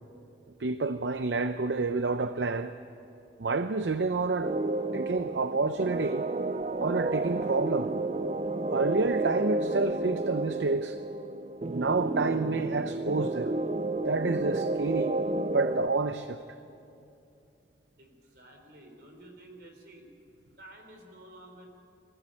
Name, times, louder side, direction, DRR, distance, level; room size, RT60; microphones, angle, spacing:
voice 1, 0.6-2.7 3.4-4.6 4.9-6.3 6.8-7.9 8.7-11.0 11.7-13.5 14.0-15.2 15.5-16.4, right 3 dB, 75° right, 0.6 m, -29 dB
sound 1, 4.4-15.9, right 2 dB, 35° right, 0.5 m, -31 dB
voice 2, 18.0-20.1 20.6-21.7, right 1 dB, 60° right, 3.6 m, -51 dB
21.0 x 14.5 x 9.8 m
head